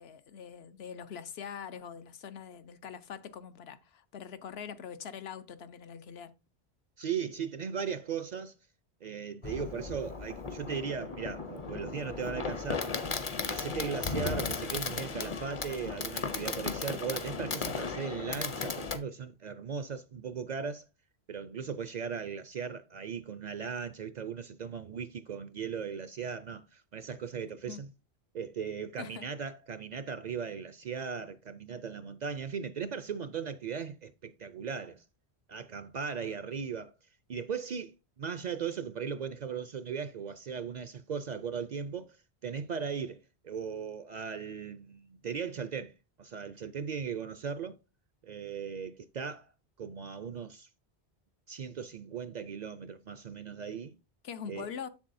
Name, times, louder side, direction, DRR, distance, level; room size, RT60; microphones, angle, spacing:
voice 1, 0.0-6.3 27.7-27.8 29.0-29.3 54.2-54.9, left 7 dB, 80° left, 0.9 m, -43 dB
voice 2, 7.0-8.5 9.0-13.0 13.4-20.9 21.3-27.9 28.3-35.0 35.5-36.9 37.3-42.2 42.4-47.8 48.2-49.5 49.8-50.7 51.5-53.9 54.5-54.7, right 6 dB, 55° right, 0.5 m, -38 dB
Fireworks, 9.4-19.0, left 4 dB, 35° left, 0.6 m, -36 dB
7.5 x 7.0 x 2.6 m
omnidirectional pair, 1.1 m